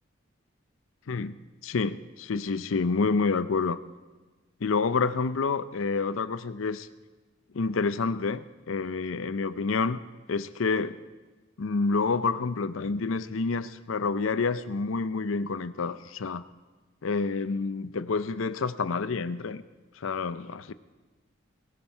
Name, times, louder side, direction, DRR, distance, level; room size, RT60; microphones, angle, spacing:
voice 1, 1.1-1.4 1.6-3.8 4.6-6.9 7.5-10.0 10.3-11.0 11.6-16.4 17.0-19.6 20.0-20.7, left 4 dB, 85° left, 14 dB, 0.6 m, -28 dB
19.5 x 16.5 x 4.5 m, 1.3 s
head